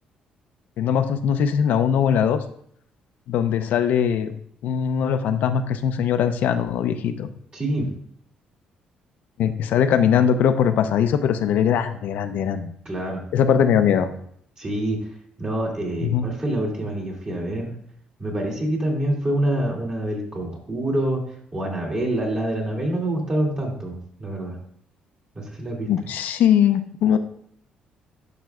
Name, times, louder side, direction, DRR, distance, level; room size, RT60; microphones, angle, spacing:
voice 1, 0.8-2.4 3.3-4.3 4.6-7.3 9.4-12.7 13.3-14.1 16.0-16.3 25.9-27.2, left 8 dB, 75° left, 8 dB, 0.5 m, -21 dB
voice 2, 7.5-7.9 12.8-13.2 14.6-15.0 15.4-17.8 18.2-21.2 21.5-24.6 25.4-25.9, right 1 dB, 30° right, -1 dB, 2.4 m, -26 dB
12.0 x 5.8 x 2.3 m, 0.67 s
cardioid pair, 135°, 3 cm